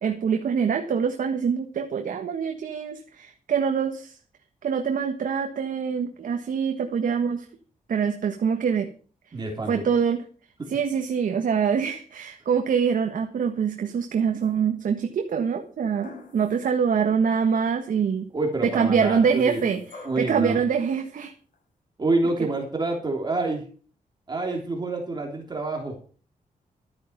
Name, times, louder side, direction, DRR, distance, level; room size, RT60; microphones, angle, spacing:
voice 1, 0.0-4.2 4.6-7.4 7.9-8.9 9.7-10.2 10.7-18.3 18.6-21.3, right 6 dB, 70° right, 5 dB, 1.5 m, -25 dB
voice 2, 9.3-9.8 10.6-10.7 18.3-19.8 20.0-20.6 22.0-23.6 24.3-26.0, right 2 dB, 30° right, 1 dB, 3.3 m, -27 dB
sound 1, 14.4-15.0 16.0-16.9 17.3-17.4 19.1-20.4 21.5-21.6, left 3 dB, 65° left, 5.9 m, -47 dB
13.0 x 9.7 x 5.9 m, 0.40 s
wide cardioid pair, 120°, 14 cm